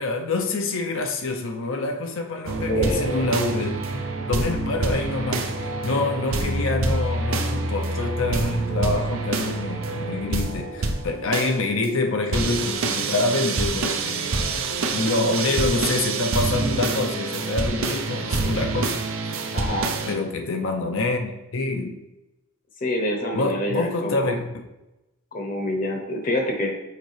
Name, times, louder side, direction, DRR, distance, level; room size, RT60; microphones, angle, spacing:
voice 1, 0.0-14.4 14.9-19.3 20.1-22.0 23.3-24.6, left 2 dB, 65° left, 0.6 m, -26 dB
sound 1, 2.5-20.2, right 3 dB, 70° right, 0.7 m, -26 dB
voice 2, 2.7-3.3 19.5-19.9 22.8-24.3 25.3-26.7, equal, 40° left, 0.8 m, -26 dB
6.6 x 4.6 x 3.3 m
head